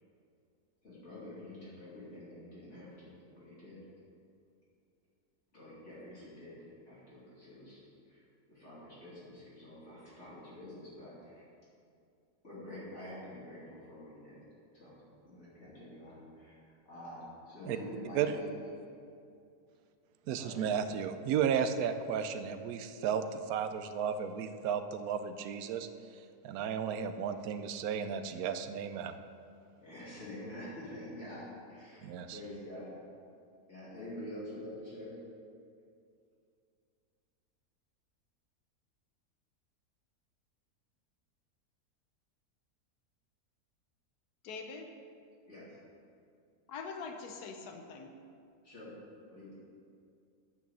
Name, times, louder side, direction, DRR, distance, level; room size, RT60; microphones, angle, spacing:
voice 1, 0.8-3.9 5.5-8.2 8.5-11.5 12.4-14.4 14.7-18.5 20.4-20.7 29.8-32.9 33.7-35.2 45.5-45.7 48.6-49.0 49.3-49.5, left 1 dB, 50° left, -10 dB, 3.0 m, -47 dB
voice 2, 20.3-25.9 26.4-29.2 32.0-32.4, right 7 dB, 75° right, 9 dB, 1.1 m, -33 dB
voice 3, 44.4-44.9 46.7-48.1, left 4 dB, 80° left, 4 dB, 1.4 m, -43 dB
9.7 x 6.2 x 6.9 m, 2.5 s
omnidirectional pair, 1.6 m